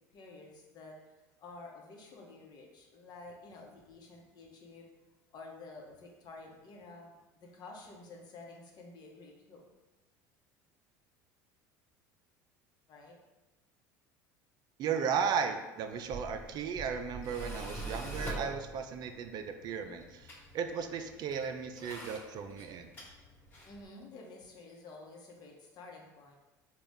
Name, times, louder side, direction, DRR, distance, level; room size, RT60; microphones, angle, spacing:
voice 1, 0.1-1.0 1.4-4.9 5.3-9.6 12.9-13.2 23.6-26.3, left 3 dB, 50° left, 0 dB, 0.9 m, -51 dB
voice 2, 14.8-22.9, right 6 dB, 50° right, 7 dB, 0.4 m, -35 dB
Tools, 16.0-23.8, right 1 dB, 25° left, 1.3 m, -45 dB
4.0 x 2.3 x 3.5 m, 1.1 s
hypercardioid pair, 80°, 9 cm